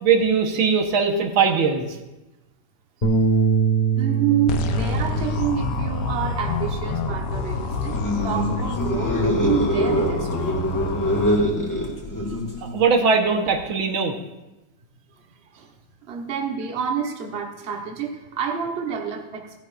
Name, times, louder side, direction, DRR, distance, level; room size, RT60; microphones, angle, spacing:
voice 1, 0.0-2.0 12.7-14.1, right 5 dB, 80° right, 3 dB, 2.0 m, -20 dB
Bass guitar, 3.0-7.5 7.9-9.3, right 6 dB, 25° left, 1.0 m, -25 dB
voice 2, 4.0-8.0 8.2-10.6 15.5-15.7 16.1-19.6, right 8 dB, 40° right, 2 dB, 1.2 m, -28 dB
sound 1, 4.5-11.3, left 5 dB, 65° left, 1.3 m, -28 dB
sound 2, 7.8-12.9, equal, 10° left, 1.7 m, -24 dB
16.0 x 11.0 x 2.5 m, 1.0 s
omnidirectional pair, 2.2 m